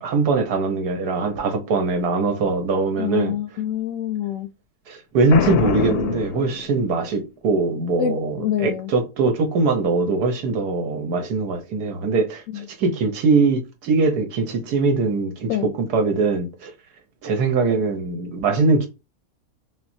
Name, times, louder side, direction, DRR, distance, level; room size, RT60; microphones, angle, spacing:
voice 1, 0.0-3.3 4.9-16.7 17.2-18.9, right 3 dB, 85° right, 1.5 m, -22 dB
voice 2, 3.0-4.5 8.0-8.9 12.5-12.6 15.5-15.7, left 10 dB, 70° left, 0.9 m, -26 dB
Boom, 5.3-7.1, left 7 dB, 90° left, 1.1 m, -24 dB
5.9 x 2.2 x 2.7 m
omnidirectional pair, 1.6 m